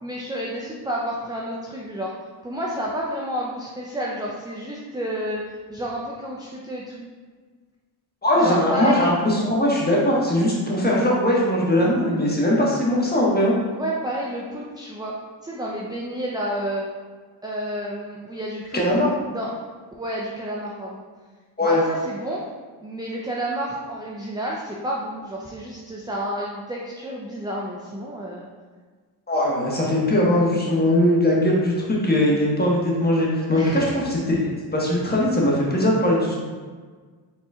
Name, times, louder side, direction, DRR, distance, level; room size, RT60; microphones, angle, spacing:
voice 1, 0.0-2.1 2.4-5.4 5.7-7.1 8.4-9.1 13.7-15.2 15.4-16.8 17.4-18.8 19.3-19.6 20.0-21.0 21.6-22.4 22.8-28.5 33.5-34.0, right 1 dB, 10° right, -4 dB, 0.5 m, -30 dB
voice 2, 8.2-13.5 18.7-19.1 21.6-21.8 29.3-34.4 34.7-36.3, left 1 dB, 20° left, -4 dB, 1.3 m, -20 dB
4.2 x 4.0 x 2.4 m, 1.5 s
supercardioid pair, 55°, 46 cm